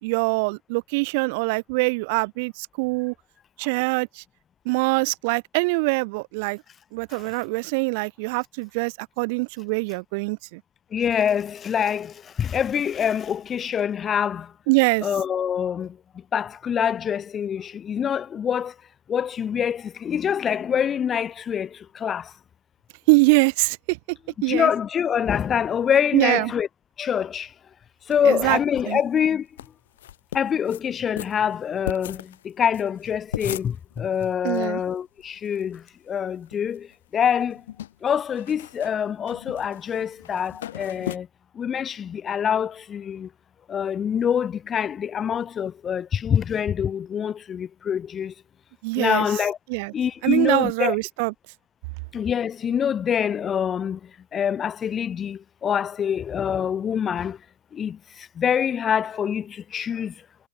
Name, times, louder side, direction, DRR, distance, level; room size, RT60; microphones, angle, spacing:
voice 1, 0.0-3.1 3.6-4.2 4.7-6.6 6.9-10.6 14.7-15.1 23.1-24.2 24.4-24.7 26.1-26.5 28.2-28.6 28.9-29.0 34.4-34.8 48.8-49.3 49.7-49.9 50.2-51.3, right 29 dB, 45° right, 0.5 m, -23 dB
voice 2, 10.9-14.5 15.0-18.7 19.1-22.3 24.5-26.7 27.0-27.5 28.1-29.5 30.3-37.6 38.0-41.3 41.5-43.3 43.7-48.3 49.0-49.6 49.9-51.0 52.1-57.4 57.7-60.1, left 8 dB, 20° left, 0.5 m, -25 dB
sound 1, 28.1-29.0 29.3-29.4 29.6-29.7 30.0-30.8 31.2-34.7 34.9-35.0 35.2-35.9 36.3-37.0 37.3-41.2, left 12 dB, 65° left, 1.1 m, -37 dB
hypercardioid pair, 140°, 0 cm